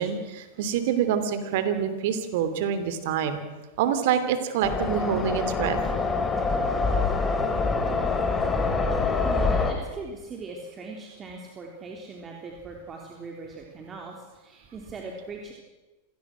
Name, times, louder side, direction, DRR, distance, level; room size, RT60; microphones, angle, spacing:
voice 1, 0.0-3.4 3.8-5.8, right 8 dB, 65° right, 10 dB, 2.9 m, -26 dB
sound 1, 4.6-9.7, left 4 dB, 15° left, 3.5 m, -25 dB
voice 2, 9.2-15.5, right 3 dB, 25° right, 0 dB, 3.5 m, -40 dB
27.0 x 18.0 x 6.3 m, 1.2 s
hypercardioid pair, 105°, 0 cm